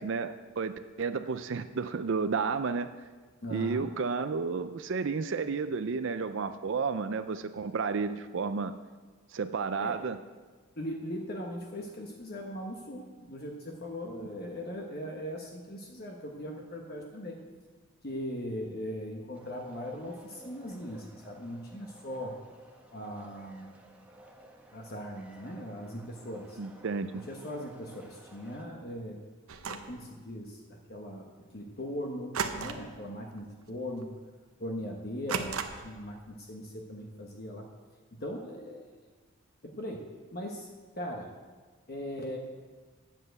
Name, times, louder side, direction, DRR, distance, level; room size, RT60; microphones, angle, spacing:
voice 1, 0.0-2.9 3.5-8.7 9.3-10.2 26.6-27.1, right 5 dB, 55° right, 10 dB, 0.4 m, -32 dB
voice 2, 3.4-3.9 9.8-10.0 10.8-17.4 18.0-22.3 22.9-23.7 24.7-26.6 27.3-29.2 29.6-30.6 30.9-31.3 31.5-34.1 34.6-37.7 38.2-38.9 39.6-40.0 40.3-40.7 41.0-41.3 41.9-42.4, equal, 45° left, 0 dB, 1.2 m, -39 dB
sound 1, 19.3-28.6, right 1 dB, 5° right, 1.0 m, -55 dB
sound 2, 29.5-30.0 32.3-33.0 33.3-33.6 34.0-34.1 35.3-36.0, right 5 dB, 75° right, 0.8 m, -35 dB
10.0 x 7.4 x 8.0 m, 1.4 s
head